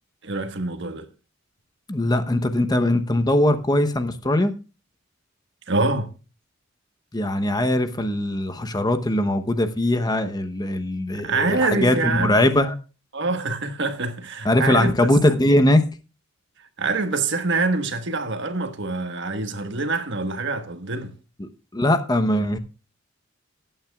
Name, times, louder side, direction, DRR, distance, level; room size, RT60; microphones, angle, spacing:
voice 1, 0.2-1.1 5.7-6.1 11.1-12.3 13.1-14.9 16.8-21.1, right 3 dB, 65° right, 1.3 m, -25 dB
voice 2, 1.9-4.5 7.1-12.7 14.4-15.8 21.4-22.6, left 1 dB, 20° left, 0.8 m, -21 dB
19.0 x 8.8 x 2.3 m
head